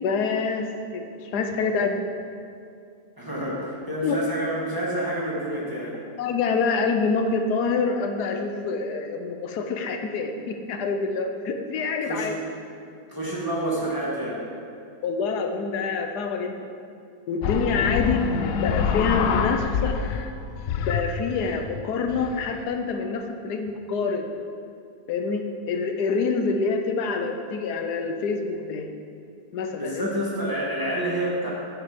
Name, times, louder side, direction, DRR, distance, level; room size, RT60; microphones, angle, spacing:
voice 1, 0.0-2.0 4.0-4.2 6.2-12.4 15.0-16.7 17.3-20.0 20.8-24.3 25.1-25.4 25.7-28.9 29.5-30.1, left 4 dB, 90° left, 5 dB, 1.4 m, -26 dB
voice 2, 3.2-6.0 12.0-12.4 13.1-14.4 29.7-31.5, right 1 dB, 15° right, -6 dB, 1.8 m, -28 dB
sound 1, 17.4-20.3 20.6-22.6, left 6 dB, 70° left, 0.9 m, -27 dB
9.5 x 7.2 x 5.1 m, 2.4 s
omnidirectional pair, 1.7 m